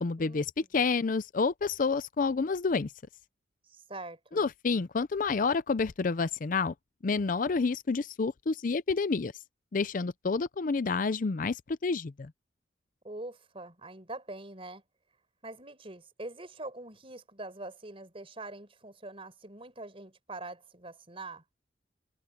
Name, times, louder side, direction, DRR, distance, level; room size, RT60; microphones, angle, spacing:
voice 1, 0.0-2.9 4.3-6.7 7.0-9.3 9.7-12.3, left 4 dB, 45° left, 0.5 m, -29 dB
voice 2, 3.7-4.4 13.0-14.8 15.4-21.4, right 2 dB, 30° right, 4.5 m, -44 dB
head